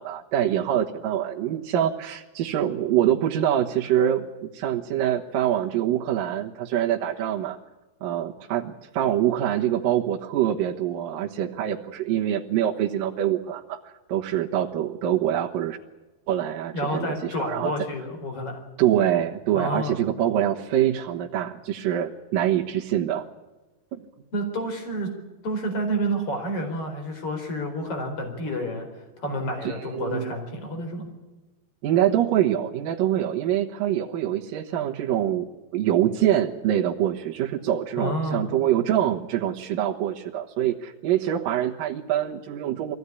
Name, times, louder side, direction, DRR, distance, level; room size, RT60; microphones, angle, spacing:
voice 1, 0.0-7.6 8.0-15.8 16.3-17.7 18.8-23.2 29.6-30.4 31.8-35.5 35.7-42.9, right 11 dB, 65° right, -1 dB, 2.7 m, -25 dB
voice 2, 16.7-18.6 19.5-20.0 24.3-25.1 25.4-28.9 29.2-31.1 38.0-38.5, equal, 35° left, 4 dB, 5.3 m, -29 dB
23.0 x 16.5 x 9.9 m, 1.2 s
omnidirectional pair, 4.6 m